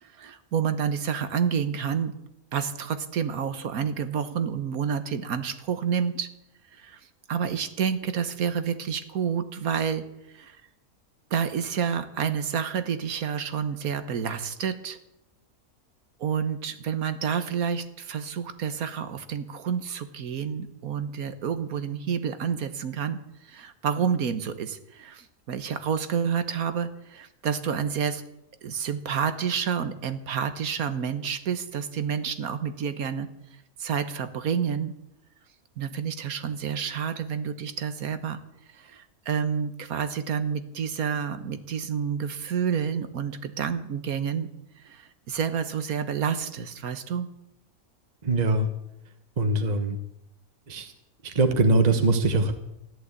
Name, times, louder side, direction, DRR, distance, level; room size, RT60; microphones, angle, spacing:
voice 1, 0.0-2.1 2.5-6.3 6.7-7.0 7.3-10.6 11.3-15.0 16.2-28.2 28.6-33.3 33.8-35.0 35.8-38.4 38.7-44.5 44.8-47.3, right 7 dB, 75° right, 11 dB, 1.6 m, -29 dB
voice 2, 48.2-48.7 49.4-50.0 50.7-50.9 51.2-52.5, right 2 dB, 30° right, 7 dB, 1.2 m, -22 dB
14.5 x 11.5 x 8.3 m, 0.83 s
omnidirectional pair, 1.6 m